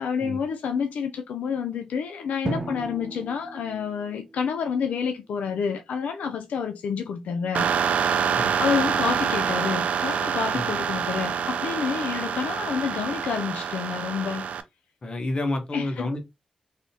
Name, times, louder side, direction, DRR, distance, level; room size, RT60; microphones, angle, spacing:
voice 1, 0.0-7.7 8.6-14.5 15.7-16.1, left 6 dB, 90° left, 0.4 m, -29 dB
Drum, 2.4-5.0, right 3 dB, 30° right, 0.6 m, -35 dB
sound 1, 7.5-14.6, right 7 dB, 80° right, 0.4 m, -26 dB
voice 2, 15.0-16.2, left 2 dB, 40° left, 0.9 m, -29 dB
3.4 x 2.6 x 2.7 m
cardioid pair, 80°, 2 cm